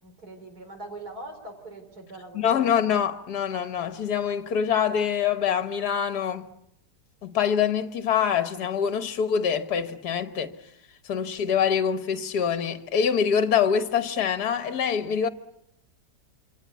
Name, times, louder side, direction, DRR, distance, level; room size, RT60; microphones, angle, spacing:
voice 1, 0.0-2.5, right 2 dB, 65° right, 4.6 m, -42 dB
voice 2, 2.4-6.5 7.2-10.5 11.1-15.3, left 7 dB, 70° left, 1.8 m, -25 dB
27.5 x 25.0 x 8.3 m
omnidirectional pair, 1.8 m